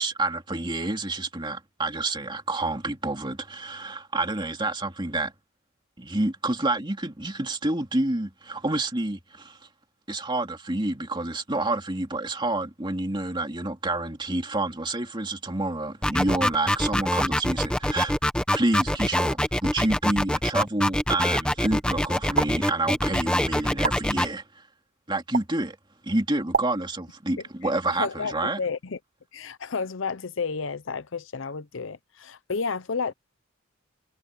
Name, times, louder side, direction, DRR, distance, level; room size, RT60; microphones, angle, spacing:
voice 1, 0.0-5.3 6.0-9.6 10.1-18.2 18.5-24.6 25.1-25.8 26.0-28.6, right 2 dB, 20° right, 2.8 m, -28 dB
sound 1, 16.0-24.3, left 1 dB, 5° left, 1.0 m, -24 dB
sound 2, 22.3-22.5 23.8-24.0 25.3-25.5 26.5-26.7, right 5 dB, 45° right, 0.7 m, -24 dB
voice 2, 27.9-29.0 29.3-33.1, left 5 dB, 60° left, 0.7 m, -31 dB
head